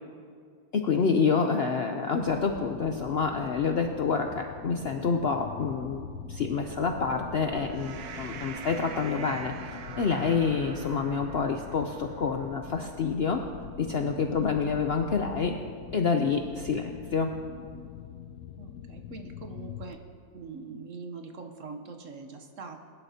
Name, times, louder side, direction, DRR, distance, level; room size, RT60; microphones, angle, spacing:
voice 1, 0.7-13.4 13.8-15.5 15.9-17.3, left 5 dB, 60° left, 4 dB, 0.6 m, -28 dB
sound 1, 2.2-19.9, left 9 dB, 75° left, 1.1 m, -43 dB
sound 2, 6.6-13.1, right 6 dB, 80° right, 1.3 m, -44 dB
voice 2, 18.6-20.0 20.3-22.8, right 4 dB, 55° right, 5 dB, 1.2 m, -43 dB
21.0 x 11.5 x 2.8 m, 2.2 s
omnidirectional pair, 1.7 m